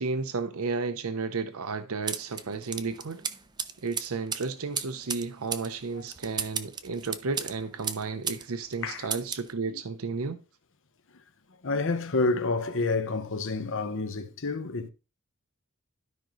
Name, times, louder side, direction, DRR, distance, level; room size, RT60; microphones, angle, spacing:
voice 1, 0.0-3.2 3.8-10.4, right 4 dB, 70° right, 0.7 m, -33 dB
sound 1, 2.1-8.5 8.7-9.5, right 6 dB, 20° right, 0.5 m, -35 dB
voice 2, 11.6-14.9, left 3 dB, 60° left, 0.9 m, -29 dB
12.5 x 5.1 x 3.0 m
head